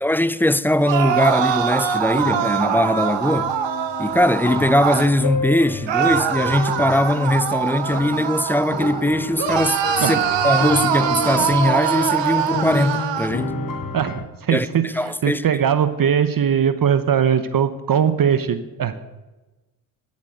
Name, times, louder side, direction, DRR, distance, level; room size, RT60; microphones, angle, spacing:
voice 1, 0.0-3.5 4.0-10.2 10.4-13.6 14.5-15.6, left 1 dB, 5° left, 0.5 m, -20 dB
sound 1, 0.8-5.1 5.9-9.0 9.4-13.3, right 8 dB, 65° right, 1.6 m, -23 dB
sound 2, 2.0-14.2, left 3 dB, 45° left, 2.3 m, -31 dB
voice 2, 13.9-19.0, right 8 dB, 45° right, 1.0 m, -20 dB
12.5 x 8.5 x 7.7 m
supercardioid pair, 65°, 47 cm